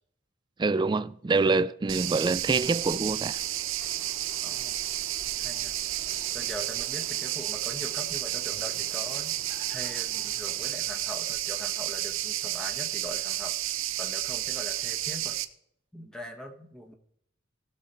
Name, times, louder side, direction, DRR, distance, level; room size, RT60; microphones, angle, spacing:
voice 1, 0.6-3.4, right 3 dB, 20° right, 0.3 m, -25 dB
sound 1, 1.9-15.4, right 14 dB, 65° right, 0.6 m, -31 dB
sound 2, 2.4-10.8, equal, 30° left, 2.9 m, -51 dB
voice 2, 4.4-4.8 5.4-5.7 6.3-9.4 9.7-15.4 15.9-16.9, equal, 5° left, 1.2 m, -42 dB
17.0 x 6.5 x 4.3 m
head